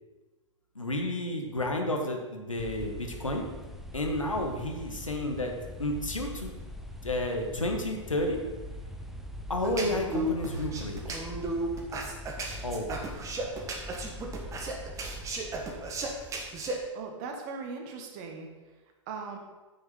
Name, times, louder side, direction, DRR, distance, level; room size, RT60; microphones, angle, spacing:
voice 1, 0.7-3.5 3.9-5.5 5.8-6.5 7.0-8.4 9.5-11.2 12.6-13.0, left 1 dB, 80° left, 2 dB, 1.6 m, -31 dB
sound 1, 2.6-16.9, left 1 dB, ahead, 0.6 m, -43 dB
sound 2, 9.6-16.7, right 2 dB, 20° right, 1.5 m, -34 dB
voice 2, 16.9-18.5 19.1-19.4, right 4 dB, 40° right, 3 dB, 1.7 m, -39 dB
8.8 x 6.4 x 5.5 m, 1.2 s
figure-of-eight pair, 105°, 16 cm